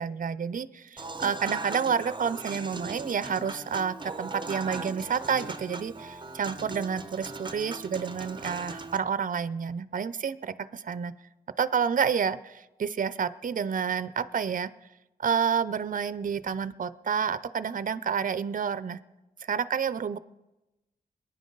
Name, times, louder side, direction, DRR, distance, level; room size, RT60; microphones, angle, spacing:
voice 1, 0.0-11.2 11.6-14.7 15.2-19.0 19.5-20.2, right 7 dB, 55° right, 15 dB, 0.6 m, -29 dB
Human voice / Acoustic guitar / Piano, 1.0-9.0, right 3 dB, 30° right, 0.8 m, -39 dB
22.5 x 9.8 x 3.9 m, 1.0 s
cardioid pair, 60°, 16 cm